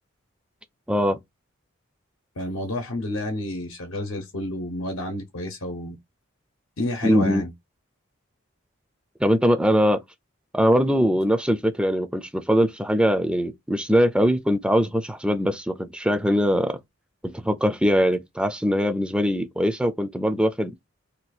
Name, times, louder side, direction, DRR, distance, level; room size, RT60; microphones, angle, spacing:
voice 1, 0.9-1.2 7.0-7.4 9.2-10.0 10.5-16.8 17.2-20.7, equal, 5° right, 0.3 m, -21 dB
voice 2, 2.4-6.0 6.8-7.5, left 1 dB, 80° left, 0.8 m, -30 dB
2.7 x 2.3 x 4.1 m
head